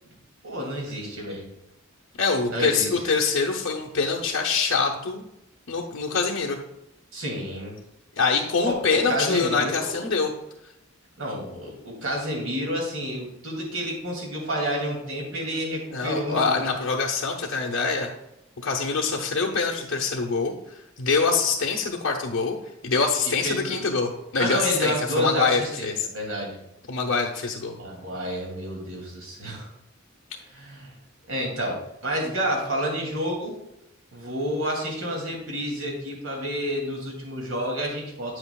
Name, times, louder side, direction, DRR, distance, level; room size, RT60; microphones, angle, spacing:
voice 1, 0.4-1.4 2.5-2.9 7.1-7.8 8.6-10.0 11.2-16.6 23.4-23.8 24.4-26.6 27.7-29.7 30.5-30.9 31.3-33.6 34.1-38.4, equal, 85° right, -1 dB, 2.7 m, -29 dB
voice 2, 2.2-5.3 5.7-6.6 8.2-10.3 15.9-18.1 18.6-20.5 21.0-22.6 22.8-26.1 26.9-27.7, left 4 dB, 85° left, -1 dB, 0.9 m, -24 dB
9.0 x 7.9 x 2.4 m, 0.84 s
head